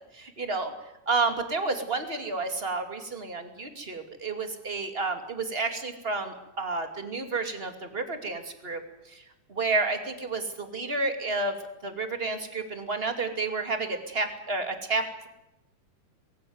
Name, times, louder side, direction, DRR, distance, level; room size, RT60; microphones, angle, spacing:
voice 1, 0.1-0.7 1.1-8.8 9.1-9.2 9.5-11.5 11.8-15.3, right 3 dB, 20° right, 7 dB, 2.4 m, -30 dB
22.5 x 16.0 x 9.6 m, 0.90 s
omnidirectional pair, 3.6 m